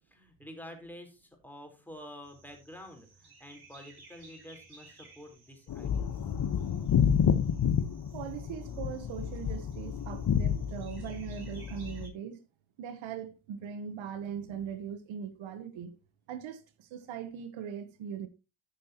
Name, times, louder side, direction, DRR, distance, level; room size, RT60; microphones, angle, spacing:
voice 1, 0.0-6.1, left 1 dB, 5° left, 4.0 m, -49 dB
sound 1, 2.2-12.1, right 3 dB, 55° right, 6.4 m, -58 dB
sound 2, 5.7-12.1, left 8 dB, 50° left, 1.2 m, -30 dB
voice 2, 8.1-12.4 12.8-16.0 16.3-18.3, right 8 dB, 85° right, 1.2 m, -40 dB
13.5 x 6.6 x 2.9 m
cardioid pair, 75°, 46 cm